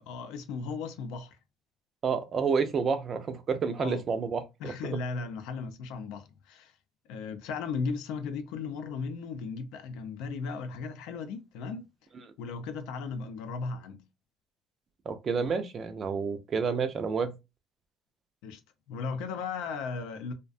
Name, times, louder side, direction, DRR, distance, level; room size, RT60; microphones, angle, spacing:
voice 1, 0.0-1.4 3.8-4.0 4.6-6.7 7.1-11.9 12.4-14.0 18.4-18.6 18.9-20.3, left 4 dB, 80° left, 0.5 m, -36 dB
voice 2, 2.0-4.7 15.1-17.3, right 5 dB, 35° right, 0.4 m, -29 dB
2.5 x 2.1 x 2.4 m
cardioid pair, 135°, 0 cm